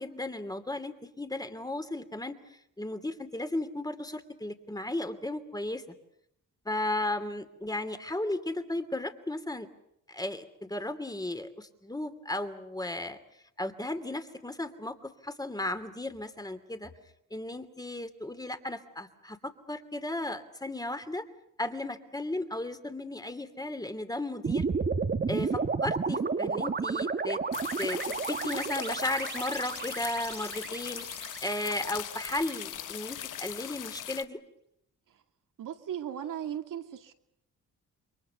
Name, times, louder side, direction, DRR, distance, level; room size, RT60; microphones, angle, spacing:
voice 1, 0.0-2.4 2.8-5.8 6.6-9.7 10.1-13.2 13.6-16.9 17.3-21.2 21.6-24.6 25.3-27.4 27.8-28.0 28.3-31.1 31.4-34.4, left 1 dB, 10° left, 10 dB, 2.7 m, -35 dB
sound 1, 24.4-32.7, right 4 dB, 30° right, 1.5 m, -32 dB
sound 2, 27.5-34.2, left 11 dB, 70° left, 1.1 m, -40 dB
voice 2, 35.6-37.1, right 10 dB, 70° right, 5 dB, 2.4 m, -37 dB
28.5 x 23.0 x 6.9 m, 0.78 s
cardioid pair, 70°, 33 cm